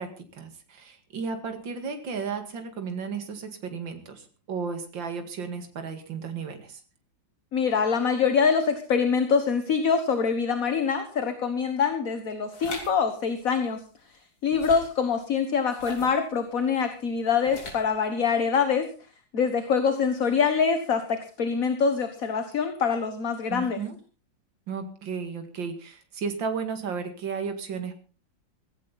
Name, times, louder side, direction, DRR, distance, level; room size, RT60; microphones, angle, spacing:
voice 1, 0.0-6.8 23.5-24.0 24.7-27.9, right 5 dB, 75° right, 7 dB, 2.8 m, -34 dB
voice 2, 7.5-13.8 14.4-18.9 19.3-23.8, left 6 dB, 50° left, 8 dB, 1.7 m, -25 dB
sound 1, 12.5-12.9 14.5-15.0 15.7-16.2 17.4-17.9, left 2 dB, 85° left, 4.5 m, -39 dB
16.5 x 16.0 x 4.1 m, 0.36 s
omnidirectional pair, 2.1 m